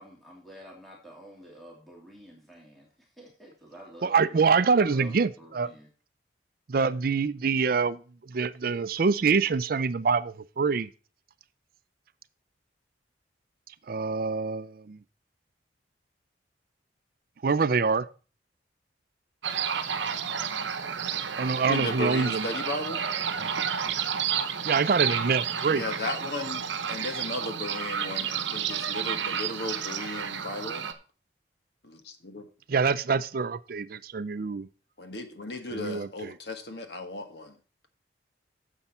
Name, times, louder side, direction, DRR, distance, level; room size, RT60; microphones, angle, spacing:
voice 1, 0.0-5.9, right 1 dB, ahead, 2.7 m, -49 dB
voice 2, 4.0-5.7 6.7-8.0 8.3-10.9 13.9-15.0 17.4-18.1 21.4-22.5 23.4-23.5 24.6-25.8 32.7-34.7 35.7-36.3, right 5 dB, 50° right, 0.4 m, -25 dB
sound 1, 19.4-30.9, right 7 dB, 80° right, 0.8 m, -31 dB
voice 3, 21.7-23.0 25.7-30.8 31.8-32.5 35.0-37.5, left 2 dB, 60° left, 1.3 m, -35 dB
9.8 x 7.1 x 4.4 m
head